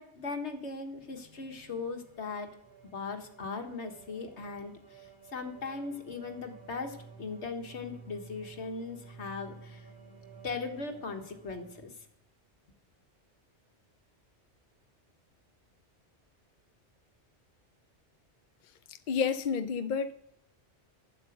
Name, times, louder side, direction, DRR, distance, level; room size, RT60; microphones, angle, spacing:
voice 1, 0.0-2.5 2.8-9.9 10.4-11.9, left 4 dB, 70° left, 1.8 m, -39 dB
sound 1, 1.0-11.9, right 5 dB, 5° left, 3.6 m, -53 dB
voice 2, 19.1-20.1, left 6 dB, 50° left, 0.7 m, -29 dB
11.0 x 7.8 x 7.8 m
omnidirectional pair, 1.2 m